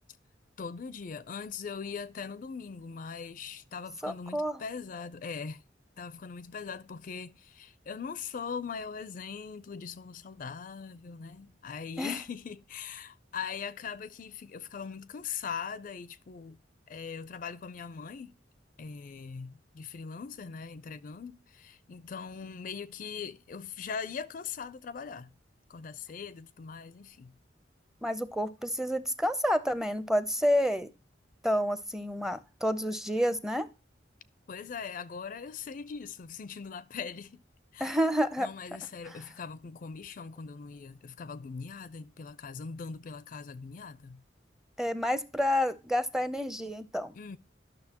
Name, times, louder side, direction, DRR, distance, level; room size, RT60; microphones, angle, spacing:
voice 1, 0.6-5.6 6.0-16.6 16.9-18.4 18.8-25.3 25.7-27.3 34.5-37.4 37.7-38.0 38.4-44.2 47.1-47.4, left 6 dB, 45° left, 0.4 m, -41 dB
voice 2, 4.0-4.6 12.0-12.2 28.0-30.9 31.4-33.7 37.8-38.5 39.1-39.2 44.8-47.1, equal, 5° right, 0.5 m, -29 dB
11.5 x 6.4 x 2.9 m
head